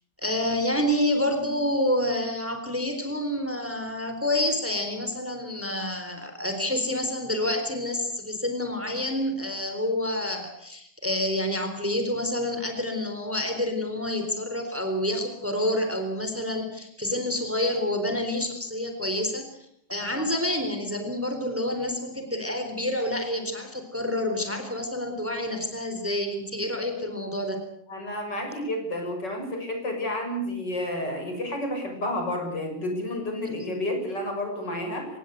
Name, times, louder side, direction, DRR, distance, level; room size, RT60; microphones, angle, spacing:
voice 1, 0.2-19.5 19.9-27.6 33.4-33.7, left 1 dB, 5° right, 6 dB, 3.9 m, -28 dB
voice 2, 27.9-35.1, left 1 dB, 60° left, 4 dB, 7.3 m, -30 dB
25.5 x 19.5 x 8.1 m, 0.70 s
omnidirectional pair, 2.1 m